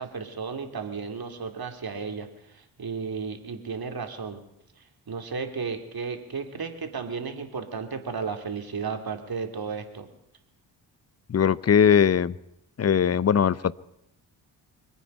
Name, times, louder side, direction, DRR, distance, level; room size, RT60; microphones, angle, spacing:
voice 1, 0.0-4.4 4.8-10.1, right 5 dB, 45° right, 6 dB, 3.1 m, -34 dB
voice 2, 11.3-12.3 12.8-13.7, left 7 dB, 30° left, 19 dB, 0.8 m, -20 dB
26.0 x 9.4 x 5.6 m, 0.80 s
hypercardioid pair, 40°, 50 cm